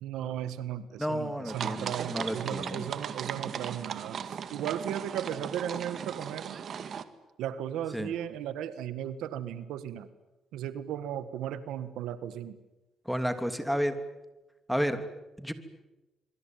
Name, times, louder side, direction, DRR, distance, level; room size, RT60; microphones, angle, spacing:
voice 1, 0.0-4.2 4.5-6.6 7.4-10.1 10.5-12.5, right 10 dB, 90° right, 13 dB, 1.7 m, -36 dB
voice 2, 1.0-2.9 7.9-8.1 13.0-14.0 14.7-15.0 15.4-15.5, equal, ahead, 8 dB, 3.0 m, -31 dB
sound 1, 1.5-7.0, right 7 dB, 60° right, 1.9 m, -37 dB
25.5 x 24.0 x 9.3 m, 1.0 s
cardioid pair, 90°, 0 cm